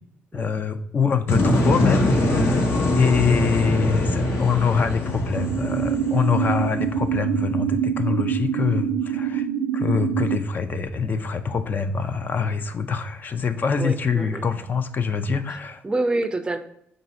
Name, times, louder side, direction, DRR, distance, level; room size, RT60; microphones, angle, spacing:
voice 1, 0.3-2.7 3.0-9.5 9.7-15.8, left 5 dB, 45° left, 9 dB, 0.4 m, -24 dB
sound 1, 1.3-7.1, left 1 dB, 65° left, 1.0 m, -23 dB
sound 2, 5.4-10.4, right 9 dB, 80° right, 0.4 m, -25 dB
voice 2, 13.8-14.4 15.8-16.6, right 2 dB, 20° right, 9 dB, 0.4 m, -26 dB
4.7 x 2.6 x 4.2 m, 0.74 s
cardioid pair, 95°, 4 cm